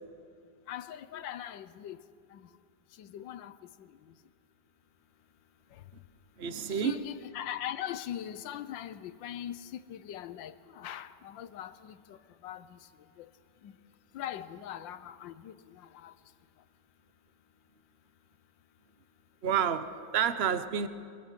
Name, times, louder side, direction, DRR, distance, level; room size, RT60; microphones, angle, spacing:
voice 1, 0.7-2.0 2.3-2.4 3.0-3.9 6.7-12.2 12.4-12.8 13.2-13.3 13.6-13.7 14.1-16.1, left 11 dB, 90° left, 1.5 m, -41 dB
voice 2, 6.4-7.0 19.4-20.9, right 8 dB, 40° right, 1.1 m, -29 dB
24.0 x 23.5 x 7.5 m
omnidirectional pair, 2.0 m